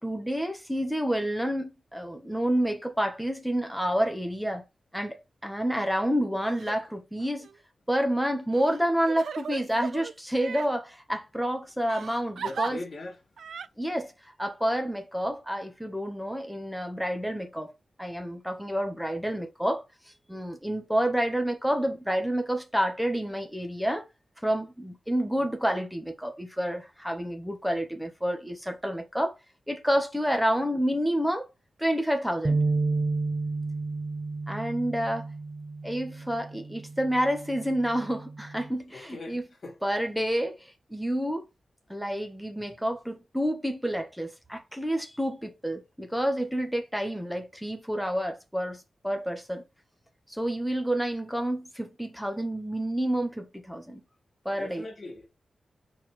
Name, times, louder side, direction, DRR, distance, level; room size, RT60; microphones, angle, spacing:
voice 1, 0.0-4.6 4.9-5.1 5.4-7.5 7.9-12.8 13.8-14.1 14.4-17.7 18.0-19.8 20.3-24.0 24.4-29.4 29.7-31.5 31.8-32.6 34.5-35.3 35.8-39.4 39.8-41.4 41.9-49.6 50.3-54.0 54.4-54.9, equal, ahead, 1.5 m, -29 dB
Crying sobbing, 6.5-6.8 7.4-7.5 8.5-10.7 11.9-12.7 13.4-13.7, right 6 dB, 75° right, 0.4 m, -36 dB
voice 2, 12.4-13.2 38.9-39.8 54.5-55.3, left 2 dB, 40° left, 1.9 m, -41 dB
sound 1, 32.4-38.7, right 3 dB, 25° right, 0.7 m, -31 dB
5.7 x 4.6 x 4.8 m
wide cardioid pair, 160°, 0 cm